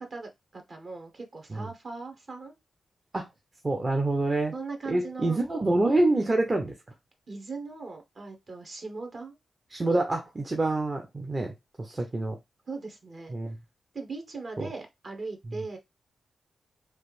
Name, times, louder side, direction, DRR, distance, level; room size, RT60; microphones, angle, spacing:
voice 1, 0.0-2.6 4.5-5.4 7.3-9.4 11.9-12.0 12.7-13.3 13.9-15.8, right 3 dB, 55° right, 1.2 m, -39 dB
voice 2, 3.6-4.5 4.9-6.7 9.7-12.4 13.3-13.6 14.6-14.7, right 2 dB, 35° right, 0.7 m, -26 dB
3.2 x 2.5 x 3.2 m
supercardioid pair, 45°, 0 cm